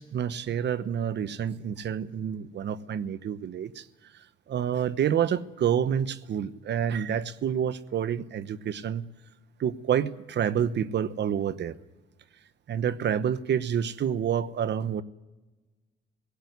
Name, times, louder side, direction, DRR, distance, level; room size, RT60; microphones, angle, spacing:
voice 1, 0.0-3.9 4.5-9.1 9.6-11.8 12.7-15.0, right 9 dB, 60° right, 15 dB, 1.1 m, -28 dB
18.0 x 16.5 x 9.5 m, 1.1 s
cardioid pair, 90°, 20 cm